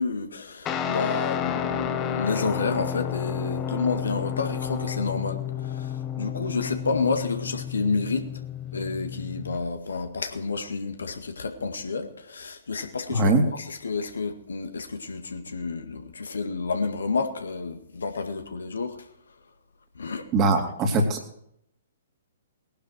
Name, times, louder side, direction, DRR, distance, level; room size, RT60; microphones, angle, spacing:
voice 1, 0.0-8.3 8.7-19.0 20.0-20.3, left 4 dB, 65° left, 1.9 m, -30 dB
Guitar, 0.7-9.6, left 9 dB, 20° left, 1.2 m, -31 dB
voice 2, 13.1-13.4 20.3-21.2, right 2 dB, 25° right, 2.6 m, -21 dB
20.0 x 11.5 x 4.5 m
figure-of-eight pair, 120°, 0 cm